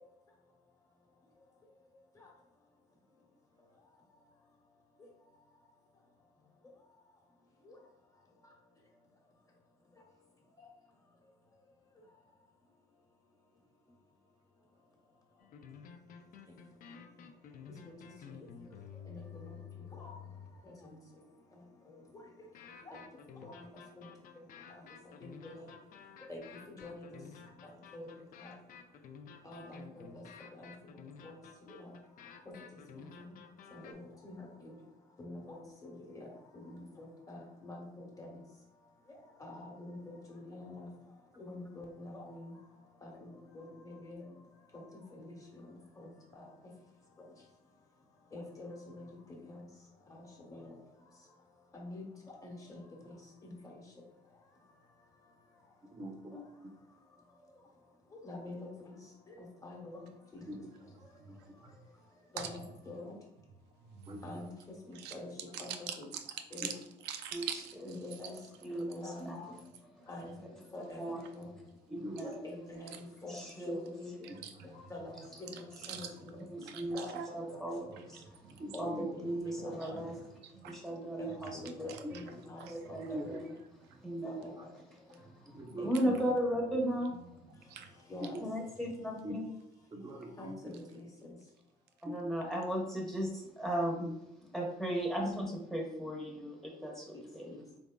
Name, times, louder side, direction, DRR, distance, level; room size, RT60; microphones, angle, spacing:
sound 1, 15.4-20.7 22.5-33.9, left 7 dB, 55° left, 0.5 m, -52 dB
voice 1, 25.2-25.5 26.3-26.4 26.8-27.2 27.9-28.1 28.4-28.5 29.4-29.9 30.1-30.2 30.6-30.7 31.2-31.3 33.7-34.4 35.2-35.9 36.7-37.8 38.2-38.3 39.4-40.9 41.4-42.5 43.0-44.2 45.2-45.4 48.3-49.1 49.5-49.6 50.5-50.6 51.7-52.0 52.4-52.6 53.0-53.1 53.4-53.5 56.3-56.4 58.3-58.6 59.6-60.0 60.3-60.4 62.3-62.6 62.9-63.1 64.2-64.5 64.9-65.3 65.6-65.7 66.0-66.1 66.5-66.7 67.8-68.3 68.8-69.3 70.1-70.3 70.7-71.5 72.2-73.4 73.7-74.1 74.9-75.2 75.5-76.1 76.9-77.1 77.4-77.6 78.7-79.9 81.2-81.3 81.8-83.4 84.2-84.5 85.8-85.9 88.1-88.4 90.4-90.8 97.4-97.6, left 2 dB, 20° left, -1 dB, 1.2 m, -45 dB
voice 2, 55.9-56.3 56.6-56.7 60.5-60.6 61.2-61.4 64.1-64.2 66.6-66.7 71.9-72.3 78.6-79.1 82.0-82.2 83.1-83.4 84.6-84.7 85.5-86.2 88.2-88.4 89.2-89.4 89.9-90.7 92.1-92.2 92.5-92.6, equal, 25° right, 4 dB, 0.7 m, -42 dB
voice 3, 61.2-61.7 62.4-62.5 63.8-64.5 64.9-65.1 65.5-66.8 67.0-67.8 68.2-68.3 72.9-73.0 74.2-74.7 75.5-76.2 76.6-77.3 77.8-78.5 79.6-80.0 80.4-80.7 81.9-82.3 82.6-83.2 83.9-84.0 87.1-87.9, right 8 dB, 80° right, 7 dB, 0.5 m, -45 dB
voice 4, 68.6-69.5 70.8-71.2 71.9-72.3 73.3-73.8 74.2-74.3 75.8-76.0 76.5-77.0 77.3-78.2 78.8-80.2 80.6-81.9 82.7-83.4 84.0-84.4 85.8-87.1 88.4-89.4 92.0-94.2 94.5-97.5, right 1 dB, ahead, -1 dB, 0.9 m, -36 dB
3.9 x 3.5 x 2.2 m, 0.84 s
cardioid pair, 110°, 17 cm